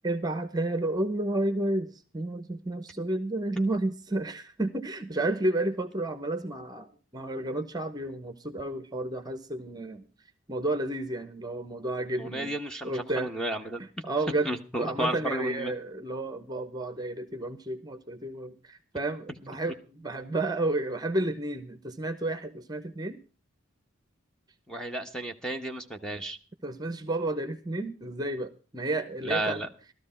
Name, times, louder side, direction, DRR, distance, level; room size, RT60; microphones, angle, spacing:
voice 1, 0.0-10.0 10.5-12.6 12.8-13.3 13.8-14.5 14.8-23.2 26.6-29.6, right 2 dB, 20° right, 10 dB, 0.9 m, -31 dB
voice 2, 12.2-13.8 14.4-15.7 24.7-26.4 29.2-29.7, right 1 dB, 5° left, 4 dB, 1.0 m, -32 dB
15.0 x 13.5 x 4.3 m, 0.34 s
head